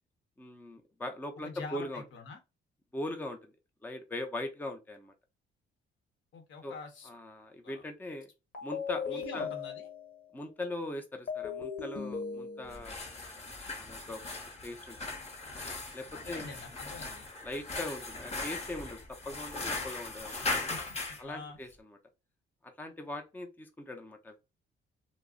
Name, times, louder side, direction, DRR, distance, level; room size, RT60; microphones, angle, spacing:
voice 1, 0.4-2.0 2.9-3.5 3.8-5.1 6.6-6.8 7.0-8.3 8.6-9.5 10.3-13.1 13.7-14.2 14.6-15.2 15.9-16.5 17.4-19.0 19.2-20.4 21.2-22.0 22.8-24.4, left 1 dB, 10° left, 0.5 m, -40 dB
voice 2, 1.4-2.4 6.3-7.1 7.6-7.8 9.1-9.9 16.1-17.3 20.4-21.6, left 4 dB, 75° left, 0.9 m, -46 dB
sound 1, 8.5-10.3 11.3-13.0, left 6 dB, 50° left, 1.1 m, -37 dB
sound 2, 12.7-21.2, left 2 dB, 30° left, 0.8 m, -39 dB
2.3 x 2.0 x 3.6 m
cardioid pair, 90°, 20 cm